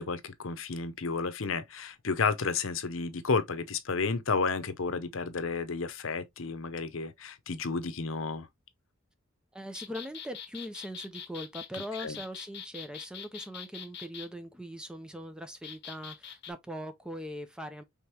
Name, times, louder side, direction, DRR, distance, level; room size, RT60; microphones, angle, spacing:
voice 1, 0.0-8.5 12.0-12.2, left 4 dB, 75° left, 0.8 m, -32 dB
voice 2, 9.5-17.8, equal, 5° right, 0.6 m, -41 dB
sound 1, 9.7-14.3 15.6-16.5, left 8 dB, 55° left, 1.3 m, -43 dB
5.2 x 3.5 x 2.8 m
head